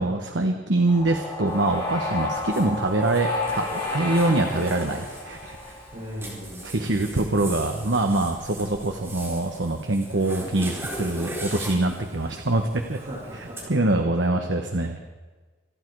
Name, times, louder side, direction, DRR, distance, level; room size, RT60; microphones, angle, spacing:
voice 1, 0.0-5.7 6.6-13.0 13.3-15.0, right 2 dB, 75° right, 4 dB, 1.3 m, -24 dB
sound 1, 0.9-6.1, left 2 dB, 30° left, 7.1 m, -31 dB
Zipper (clothing), 1.5-13.6, right 1 dB, 15° right, 4.5 m, -40 dB
voice 2, 5.9-7.1 12.9-13.7, equal, 50° right, -9 dB, 7.1 m, -38 dB
27.0 x 11.0 x 4.8 m, 1.3 s
head